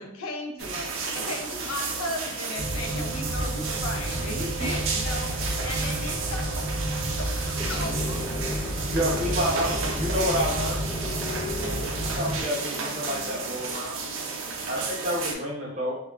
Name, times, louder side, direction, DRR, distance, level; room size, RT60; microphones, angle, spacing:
voice 1, 0.0-6.6 7.2-8.4, left 2 dB, 75° left, 3 dB, 0.5 m, -36 dB
sound 1, 0.6-15.3, right 4 dB, 60° right, 0.5 m, -32 dB
sound 2, 2.6-12.4, right 1 dB, 40° left, 1.1 m, -31 dB
voice 2, 7.6-13.8, left 2 dB, 20° left, -6 dB, 0.6 m, -37 dB
voice 3, 8.9-10.8 11.6-14.0 14.7-16.0, equal, 35° right, -4 dB, 0.9 m, -29 dB
3.4 x 2.3 x 2.3 m, 0.78 s
head